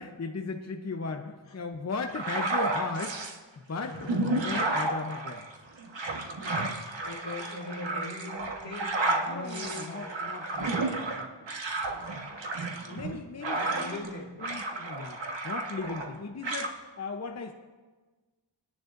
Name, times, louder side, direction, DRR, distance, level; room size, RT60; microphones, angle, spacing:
voice 1, 0.0-3.2 3.7-5.4 9.3-11.3 12.9-14.1 14.4-17.5, left 4 dB, 35° left, 4 dB, 0.8 m, -37 dB
sound 1, 2.1-3.4 3.9-14.1 14.4-16.1 16.4-16.7, right 2 dB, 70° right, 1.5 m, -32 dB
voice 2, 3.8-4.4 7.0-10.2 13.4-14.3, left 2 dB, 70° left, -1 dB, 2.6 m, -41 dB
23.0 x 10.5 x 2.6 m, 1.3 s
wide cardioid pair, 85°, 45 cm